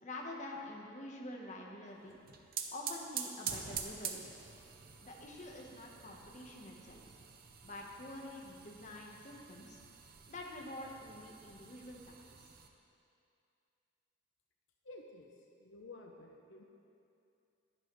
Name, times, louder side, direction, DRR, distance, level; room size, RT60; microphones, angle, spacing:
voice 1, 0.0-2.2 2.7-4.4 5.0-7.2 7.6-9.8 10.3-12.0 12.3-12.4, left 1 dB, 40° left, -1 dB, 1.1 m, -47 dB
sound 1, 2.1-12.7, right 7 dB, 50° right, 0.7 m, -46 dB
voice 2, 14.8-16.6, left 2 dB, 80° left, 1 dB, 0.8 m, -53 dB
11.5 x 10.5 x 3.1 m, 2.5 s
head